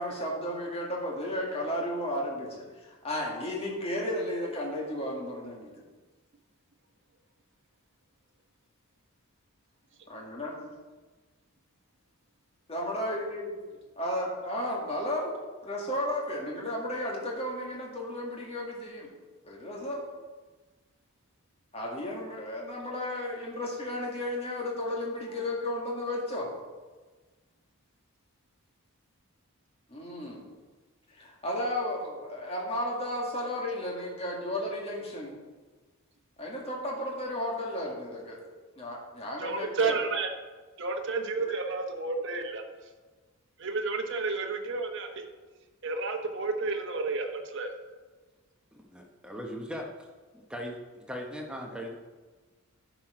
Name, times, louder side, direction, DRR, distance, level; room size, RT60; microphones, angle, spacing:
voice 1, 0.0-5.8 10.1-10.7 12.7-19.1 19.4-20.1 21.7-26.5 29.9-30.5 31.1-35.4 36.4-38.4 38.8-40.0, left 1 dB, 25° left, -2 dB, 2.1 m, -34 dB
voice 2, 39.4-40.3 40.8-42.6 43.6-45.2 45.8-47.7, right 3 dB, 55° right, 4 dB, 1.0 m, -31 dB
voice 3, 48.7-50.1 50.3-52.0, equal, 5° right, 1 dB, 0.9 m, -39 dB
10.5 x 6.1 x 5.0 m, 1.3 s
head